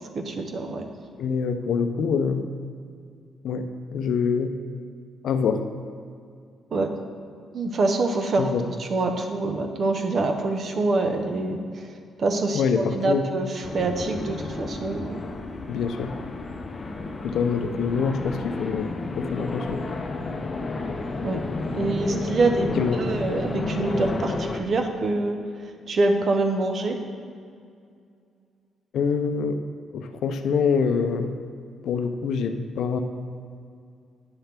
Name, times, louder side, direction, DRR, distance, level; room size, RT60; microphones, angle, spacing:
voice 1, 0.1-0.9 6.7-6.9 7.5-8.5 8.8-15.2 21.2-21.4 21.7-25.4 25.6-27.0, right 2 dB, 50° right, 5 dB, 0.8 m, -25 dB
voice 2, 1.2-2.5 3.4-4.6 5.2-5.6 8.4-8.6 12.5-13.2 15.7-16.1 17.2-19.8 22.8-23.0 28.9-29.6 29.9-31.3 31.8-33.0, left 6 dB, 70° left, 7 dB, 0.6 m, -25 dB
sound 1, 13.6-24.6, left 3 dB, 35° left, 0.6 m, -31 dB
9.7 x 3.3 x 5.9 m, 2.3 s
cardioid pair, 90°, 0 cm